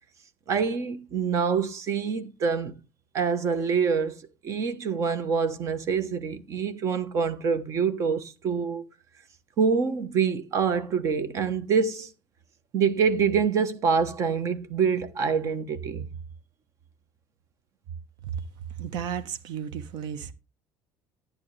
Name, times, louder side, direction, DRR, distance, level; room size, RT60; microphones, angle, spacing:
voice 1, 0.5-2.8 3.1-8.8 9.6-12.1 12.7-16.1, right 6 dB, 35° right, 1.1 m, -26 dB
voice 2, 18.8-20.3, right 8 dB, 55° right, 1.2 m, -33 dB
11.0 x 10.5 x 3.3 m
cardioid pair, 175°, 9 cm